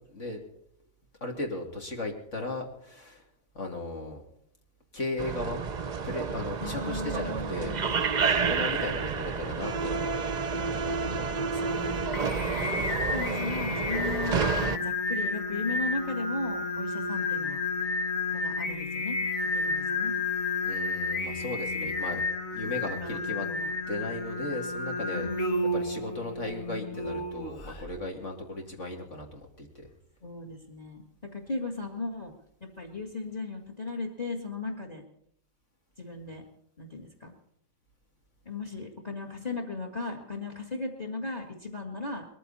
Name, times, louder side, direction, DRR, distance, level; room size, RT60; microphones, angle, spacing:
voice 1, 0.1-0.4 1.2-3.2 3.5-4.2 4.9-5.7 6.0-7.7 8.1-10.2 10.8-11.8 12.8-12.9 20.6-22.2 22.5-23.4 23.9-25.3 25.7-29.9, left 2 dB, 65° left, 2 dB, 3.0 m, -36 dB
sound 1, 5.2-14.8, right 5 dB, 40° right, 0.7 m, -30 dB
voice 2, 6.6-8.0 10.6-11.7 13.1-17.6 18.3-20.1 23.0-23.7 25.1-25.8 30.2-32.3 32.6-35.0 36.0-36.4 36.8-37.3 38.5-42.3, left 3 dB, 30° left, 4 dB, 2.1 m, -37 dB
Singing, 11.6-27.9, left 3 dB, 80° left, 2.5 m, -31 dB
21.0 x 14.5 x 4.2 m, 0.71 s
omnidirectional pair, 1.4 m